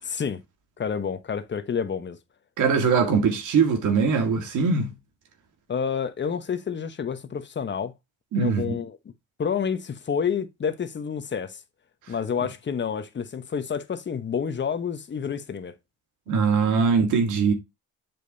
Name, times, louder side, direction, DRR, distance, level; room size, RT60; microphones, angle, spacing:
voice 1, 0.0-0.4 0.8-2.2 5.7-7.9 8.3-9.0 9.4-11.6 12.1-15.7, left 7 dB, 35° left, 1.1 m, -29 dB
voice 2, 2.6-4.9 8.3-8.7 16.3-17.5, right 5 dB, 80° right, 1.9 m, -21 dB
7.6 x 5.2 x 2.7 m
cardioid pair, 90°, 30 cm